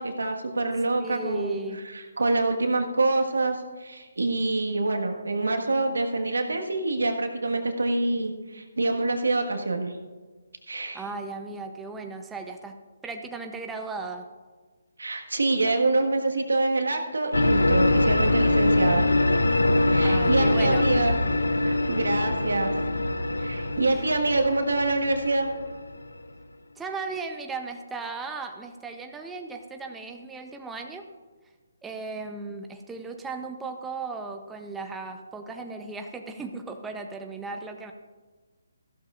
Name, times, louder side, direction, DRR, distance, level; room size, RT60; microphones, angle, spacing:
voice 1, 0.0-1.5 1.9-9.9 10.7-11.0 15.0-19.1 19.9-21.2 21.6-22.7 23.4-25.5, right 2 dB, 85° right, 4 dB, 1.5 m, -26 dB
voice 2, 1.0-1.8 10.9-14.3 20.0-20.8 26.8-31.1 31.8-37.9, right 4 dB, 10° right, 4 dB, 0.6 m, -36 dB
sound 1, 17.3-26.2, left 2 dB, 90° left, 0.7 m, -23 dB
14.5 x 12.0 x 2.5 m, 1.4 s
hypercardioid pair, 150°, 0 cm